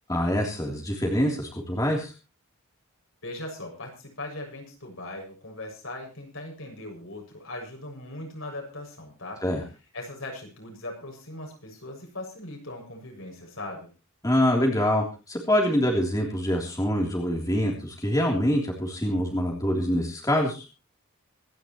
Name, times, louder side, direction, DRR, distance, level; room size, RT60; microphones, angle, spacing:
voice 1, 0.1-2.1 9.4-9.6 14.2-20.6, equal, 15° left, -1 dB, 3.4 m, -25 dB
voice 2, 3.2-9.4 9.9-13.9, left 1 dB, 70° left, 0 dB, 7.0 m, -39 dB
26.5 x 11.0 x 3.1 m, 0.32 s
head